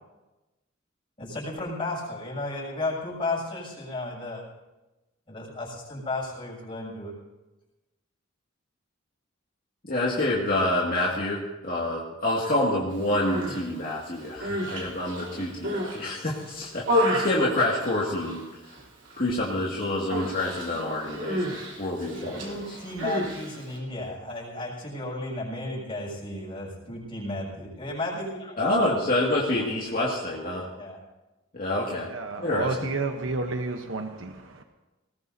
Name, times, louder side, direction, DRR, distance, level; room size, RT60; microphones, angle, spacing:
voice 1, 1.2-4.4 5.3-7.1 22.1-28.6 30.8-31.0, left 2 dB, 30° left, -4 dB, 6.8 m, -34 dB
voice 2, 9.8-18.4 19.2-22.8 28.6-30.7 31.5-32.1 32.4-32.7, left 1 dB, 45° left, -5 dB, 2.2 m, -27 dB
Human voice, 13.0-13.6 14.2-16.0 16.4-18.4 18.7-19.1 19.4-19.6 20.1-23.8, equal, 65° right, 3.6 m, -31 dB
voice 3, 32.1-34.6, right 3 dB, 80° right, 5 dB, 1.0 m, -31 dB
20.0 x 20.0 x 2.8 m, 1.1 s
head